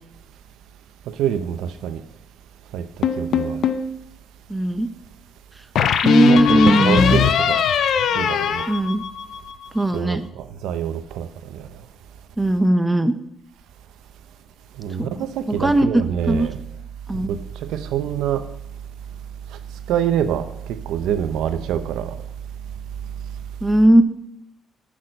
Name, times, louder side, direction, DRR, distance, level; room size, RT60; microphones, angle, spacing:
voice 1, 1.1-2.0 2.7-2.9 3.2-3.6 6.3-7.6 8.1-8.6 9.9-11.3 11.5-11.6 14.8-16.6 17.1-17.4 17.7-18.5 19.9-22.2, right 9 dB, 90° right, 11 dB, 0.7 m, -25 dB
sound 1, 3.0-3.9 5.8-9.5, left 7 dB, 70° left, 0.7 m, -20 dB
voice 2, 4.5-4.9 6.0-7.2 8.7-9.0 9.7-10.2 12.4-13.1 15.0-15.1 15.5-15.9 16.3-16.5 17.1-17.4 23.6-24.0, right 1 dB, 10° right, 10 dB, 0.8 m, -17 dB
8.2 x 6.3 x 6.5 m, 0.77 s
cardioid pair, 90°, 0 cm